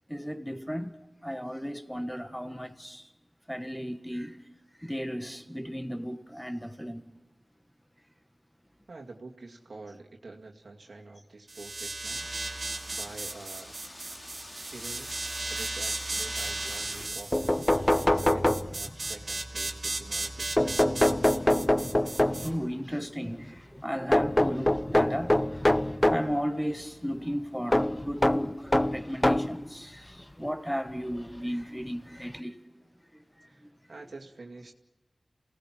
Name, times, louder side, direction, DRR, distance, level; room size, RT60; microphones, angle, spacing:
voice 1, 0.1-0.9 1.2-3.1 3.5-4.4 4.8-7.1 17.8-18.1 20.9-21.0 21.5-25.7 25.9-32.6 33.4-33.7, equal, 5° left, 1.6 m, -35 dB
voice 2, 8.9-12.3 12.9-13.8 14.5-15.2 15.5-17.6 18.0-21.4 33.5-34.7, right 3 dB, 80° right, 2.3 m, -47 dB
sound 1, 11.5-22.5, right 2 dB, 60° right, 2.5 m, -36 dB
Wind, 12.1-17.1, left 1 dB, 40° left, 3.1 m, -45 dB
sound 2, 17.0-17.1 17.3-19.1 20.6-22.6 24.1-26.3 27.7-29.6 30.5-30.6 31.9-32.0 32.3-32.4, left 1 dB, 25° left, 0.7 m, -24 dB
28.0 x 18.5 x 6.0 m
cardioid pair, 40°, 0 cm